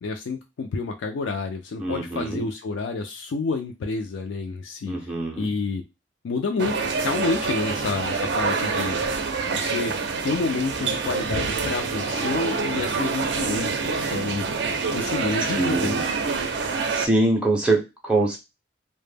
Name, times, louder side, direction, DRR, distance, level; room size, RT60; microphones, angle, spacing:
voice 1, 0.0-4.9 5.4-5.8 6.2-9.0 9.5-9.9 10.2-14.6 14.9-16.0, left 4 dB, 80° left, 3 dB, 0.4 m, -29 dB
voice 2, 1.8-2.4 4.9-5.5 15.6-16.0 16.9-18.4, right 2 dB, 5° right, -1 dB, 0.4 m, -24 dB
sound 1, 6.6-17.1, right 4 dB, 65° right, 0.4 m, -26 dB
2.1 x 2.1 x 3.2 m, 0.24 s
head